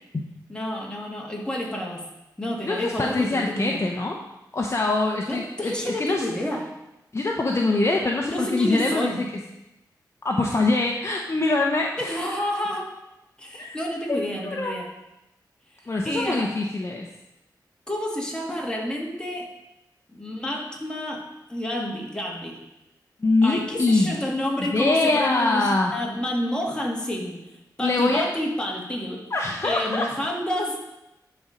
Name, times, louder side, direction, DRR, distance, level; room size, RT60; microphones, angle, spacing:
voice 1, 0.5-2.0 2.4-3.8 5.3-6.8 8.3-9.3 12.0-12.9 13.4-14.9 16.0-16.6 17.9-19.5 20.1-22.6 23.4-29.3 29.6-30.8, left 1 dB, 10° left, -2 dB, 2.2 m, -29 dB
voice 2, 2.6-4.2 4.5-6.2 7.1-9.1 10.2-12.1 13.5-13.8 14.1-14.8 15.9-17.1 23.2-24.1 24.6-25.9 27.8-28.3 29.3-30.1, left 2 dB, 35° left, 0 dB, 0.9 m, -24 dB
11.5 x 4.3 x 5.2 m, 0.94 s
cardioid pair, 65°, 8 cm